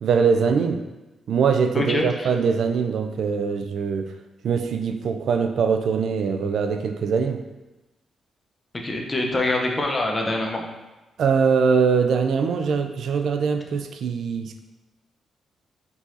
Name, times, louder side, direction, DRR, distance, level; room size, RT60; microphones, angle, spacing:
voice 1, 0.0-0.8 1.3-4.1 4.4-7.4 11.2-14.6, right 6 dB, 70° right, 6 dB, 0.4 m, -22 dB
voice 2, 1.7-2.3 8.7-10.6, left 2 dB, 25° left, 1 dB, 0.7 m, -25 dB
4.7 x 3.9 x 2.7 m, 1.1 s
cardioid pair, 95°, 0 cm